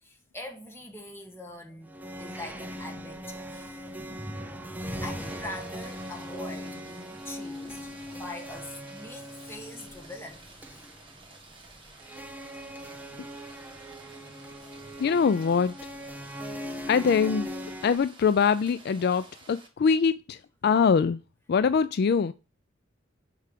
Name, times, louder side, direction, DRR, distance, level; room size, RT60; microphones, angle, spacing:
voice 1, 0.0-3.9 4.8-10.9 14.6-14.8, left 2 dB, 15° left, 1.8 m, -43 dB
sound 1, 1.9-18.0, equal, 10° right, 0.7 m, -40 dB
Rain, 5.2-19.7, right 3 dB, 25° right, 1.8 m, -52 dB
voice 2, 15.0-15.7 16.9-17.5 17.8-21.2 21.5-22.3, left 6 dB, 55° left, 0.3 m, -23 dB
6.8 x 4.8 x 5.0 m
head